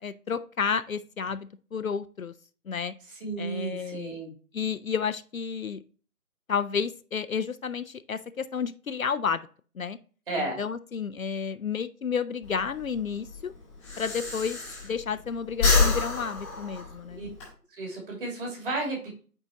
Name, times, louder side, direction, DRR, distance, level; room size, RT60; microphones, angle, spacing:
voice 1, 0.0-2.3 2.7-2.9 3.4-4.2 4.5-5.8 6.5-9.5 9.7-10.0 10.4-13.5 14.0-14.6 14.8-17.2, left 6 dB, 65° left, 12 dB, 0.6 m, -31 dB
voice 2, 3.1-4.3 10.3-10.6 17.1-17.3 17.8-19.2, right 2 dB, 35° right, -1 dB, 2.7 m, -33 dB
Breathing, 12.4-15.2 15.5-17.5, left 4 dB, 5° left, 1.1 m, -27 dB
9.0 x 3.9 x 2.9 m, 0.39 s
figure-of-eight pair, 150°, 46 cm